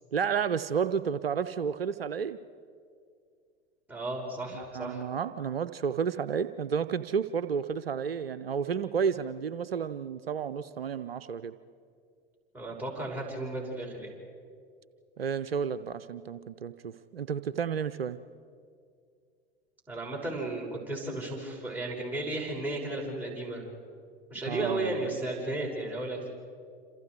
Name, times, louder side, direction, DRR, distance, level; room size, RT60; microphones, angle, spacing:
voice 1, 0.1-2.4 4.7-11.5 15.2-18.2 24.5-25.0, right 7 dB, 75° right, 13 dB, 0.7 m, -31 dB
voice 2, 3.9-5.1 12.5-14.1 19.9-23.7 24.3-26.3, right 2 dB, 5° right, -2 dB, 6.4 m, -34 dB
27.5 x 27.0 x 4.8 m, 2.3 s
figure-of-eight pair, 85°, 29 cm